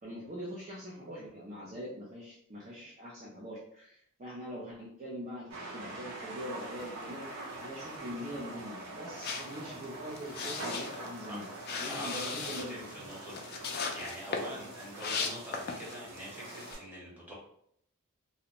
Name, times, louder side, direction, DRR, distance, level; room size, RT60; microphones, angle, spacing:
voice 1, 0.0-7.3 7.6-11.5 11.8-12.7 13.0-13.1, equal, 35° right, -5 dB, 0.4 m, -43 dB
sound 1, 5.5-16.8, right 2 dB, 75° right, 0.7 m, -44 dB
sound 2, 9.2-16.1 16.4-16.7, left 5 dB, 45° left, 0.3 m, -38 dB
voice 2, 11.7-17.3, equal, 10° right, -6 dB, 0.9 m, -44 dB
2.5 x 2.1 x 2.8 m, 0.68 s
head